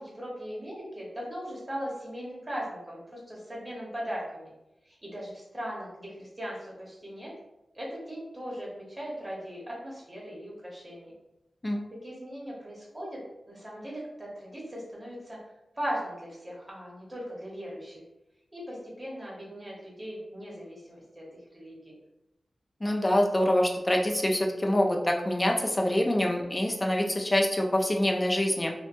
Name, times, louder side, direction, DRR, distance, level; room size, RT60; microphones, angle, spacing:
voice 1, 0.0-4.5 4.8-7.3 7.7-11.1 11.7-13.2 13.5-15.4 15.7-18.0 18.5-21.9, equal, 20° right, -5 dB, 1.0 m, -39 dB
voice 2, 22.8-28.7, left 1 dB, 20° left, 1 dB, 0.4 m, -25 dB
2.8 x 2.2 x 2.5 m, 0.92 s
wide cardioid pair, 85°, 0 cm